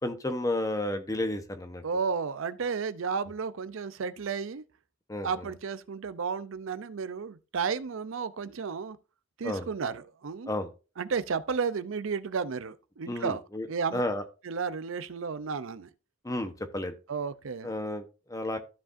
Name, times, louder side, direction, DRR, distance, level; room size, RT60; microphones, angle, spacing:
voice 1, 0.0-1.8 5.1-5.5 9.4-9.7 10.5-10.7 13.1-13.7 13.9-14.2 16.2-16.9 17.6-18.6, left 1 dB, 15° left, 0.9 m, -32 dB
voice 2, 1.8-4.6 5.2-9.0 9.4-10.5 11.0-13.4 13.7-14.0 14.4-15.9 17.1-17.7, right 5 dB, 80° right, 0.5 m, -32 dB
14.5 x 5.0 x 2.6 m
head